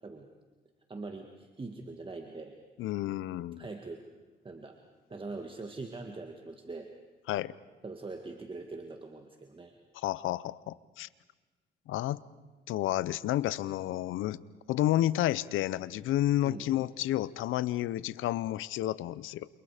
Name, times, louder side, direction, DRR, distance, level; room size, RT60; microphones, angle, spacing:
voice 1, 0.9-2.6 3.6-4.0 4.4-4.8 5.1-6.9 7.8-9.7 16.4-16.7, right 3 dB, 25° right, 4 dB, 2.0 m, -42 dB
voice 2, 2.8-3.7 7.3-7.5 9.9-11.1 11.9-12.2 12.7-14.4 14.7-19.5, left 14 dB, 85° left, 19 dB, 0.7 m, -30 dB
29.0 x 28.0 x 5.1 m, 1.2 s
cardioid pair, 90°, 20 cm